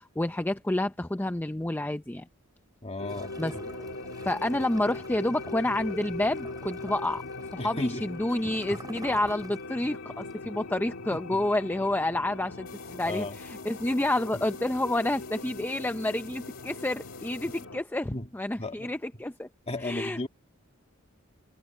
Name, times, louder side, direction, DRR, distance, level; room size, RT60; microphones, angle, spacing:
voice 1, 0.0-2.3 3.4-3.6 4.2-7.2 7.5-19.5 19.8-20.3, left 1 dB, 10° left, 0.5 m, -29 dB
voice 2, 2.8-3.7 7.6-8.1 8.4-8.8 10.4-10.5 11.1-11.2 13.0-13.4 18.1-18.3 18.6-18.9 19.7-20.3, left 2 dB, 30° left, 1.9 m, -35 dB
sound 1, 3.0-17.8, left 3 dB, 80° left, 2.1 m, -40 dB
Gurgling / Toilet flush, 3.1-9.9 10.2-10.3, right 2 dB, 20° right, 4.4 m, -49 dB
sound 2, 12.7-17.7, left 11 dB, 45° left, 2.8 m, -52 dB
head